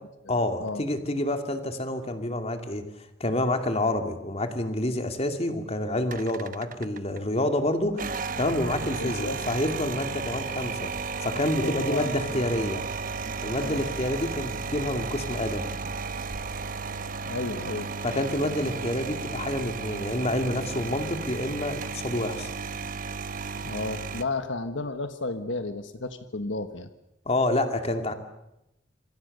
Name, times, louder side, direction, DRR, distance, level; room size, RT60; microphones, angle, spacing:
voice 1, 0.3-2.8 3.2-10.9 11.2-12.8 13.4-15.7 18.0-22.5 27.3-28.1, left 1 dB, 35° left, 6 dB, 2.5 m, -28 dB
sound 1, 6.1-7.2 7.9-24.2, right 4 dB, 45° right, 1.0 m, -34 dB
voice 2, 8.7-9.4 11.6-12.7 13.6-13.8 17.3-17.9 23.6-26.9, left 3 dB, 75° left, 9 dB, 1.3 m, -33 dB
27.0 x 25.0 x 6.7 m, 0.88 s
head